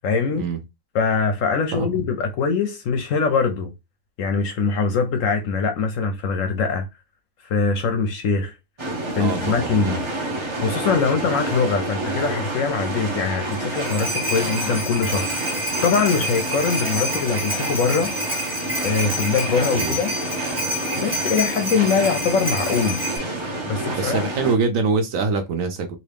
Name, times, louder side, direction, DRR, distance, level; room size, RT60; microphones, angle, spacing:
voice 1, 0.0-0.4 0.9-3.7 4.2-6.9 7.5-8.6 9.1-10.0 10.6-18.1 18.8-20.1 21.0-23.1 23.7-24.3, left 5 dB, 65° left, 0.9 m, -22 dB
sound 1, 8.8-24.6, right 2 dB, 35° right, 0.4 m, -29 dB
voice 2, 9.2-10.0 19.7-20.0 23.9-26.0, right 4 dB, 65° right, 0.9 m, -24 dB
sound 2, 13.5-23.2, equal, 15° right, 1.1 m, -28 dB
3.0 x 2.6 x 3.3 m
omnidirectional pair, 1.7 m